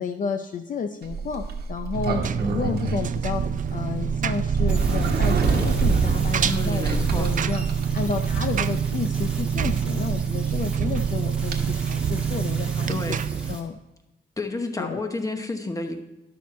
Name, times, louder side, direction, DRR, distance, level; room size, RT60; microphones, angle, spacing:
voice 1, 0.0-3.4 3.7-7.6 7.9-13.0 13.5-13.8 14.8-15.0, left 6 dB, 50° left, 7 dB, 0.5 m, -31 dB
Sliding door, 1.0-11.6, right 4 dB, 65° right, 1.1 m, -28 dB
Engine, 1.9-13.6, right 8 dB, 50° right, 0.4 m, -26 dB
sound 1, 4.7-13.6, right 1 dB, 5° right, 1.5 m, -41 dB
voice 2, 6.4-7.3 12.9-13.6 14.4-16.0, left 2 dB, 20° left, 6 dB, 1.0 m, -31 dB
11.0 x 6.3 x 4.1 m, 0.99 s
wide cardioid pair, 120°, 18 cm